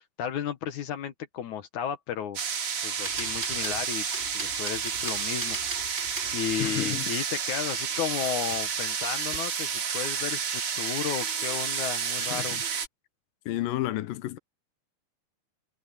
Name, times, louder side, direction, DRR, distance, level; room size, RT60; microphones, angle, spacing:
voice 1, 0.2-2.4 2.8-4.1 4.3-5.8 6.3-12.6, left 9 dB, 70° left, 2.5 m, -33 dB
sound 1, 2.4-12.9, right 7 dB, 45° right, 2.5 m, -30 dB
sound 2, 3.0-6.8 7.3-7.4 7.6-8.8 9.3-9.4, right 1 dB, 20° right, 6.7 m, -41 dB
voice 2, 6.6-7.1 8.2-8.3 12.2-12.6 13.5-14.4, left 15 dB, 90° left, 2.6 m, -32 dB
omnidirectional pair, 3.8 m